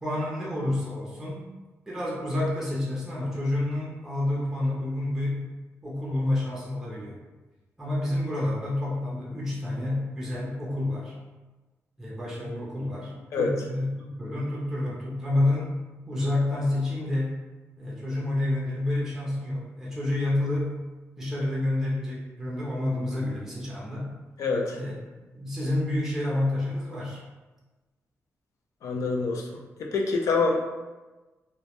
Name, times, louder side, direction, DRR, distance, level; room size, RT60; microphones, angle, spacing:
voice 1, 0.0-1.4 1.9-5.5 5.8-7.2 7.8-11.1 12.0-15.8 16.1-17.4 17.8-20.8 21.2-24.1 24.7-24.9 25.3-27.2, left 1 dB, 5° right, -5 dB, 0.4 m, -29 dB
voice 2, 24.4-24.8 28.8-29.5 29.8-30.6, left 4 dB, 75° left, 1 dB, 0.4 m, -25 dB
2.1 x 2.0 x 2.8 m, 1.2 s
wide cardioid pair, 160°, 5 cm